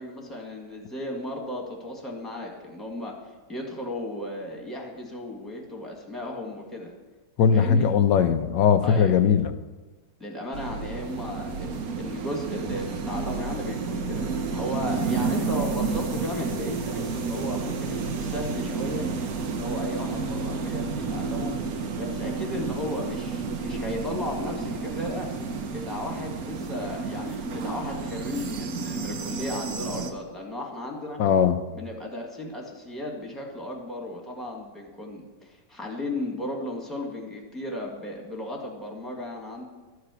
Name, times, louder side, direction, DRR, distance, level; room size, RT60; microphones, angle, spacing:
voice 1, 0.0-3.1 3.5-6.9 7.5-7.9 8.8-9.2 10.2-19.1 19.5-21.5 21.9-25.3 25.7-31.2 31.7-39.7, left 1 dB, ahead, -1 dB, 1.7 m, -35 dB
voice 2, 7.4-9.5 31.2-31.6, left 7 dB, 85° left, 8 dB, 1.3 m, -20 dB
sound 1, 10.5-30.1, right 4 dB, 60° right, 1.2 m, -31 dB
12.5 x 4.9 x 8.1 m, 1.2 s
omnidirectional pair, 1.9 m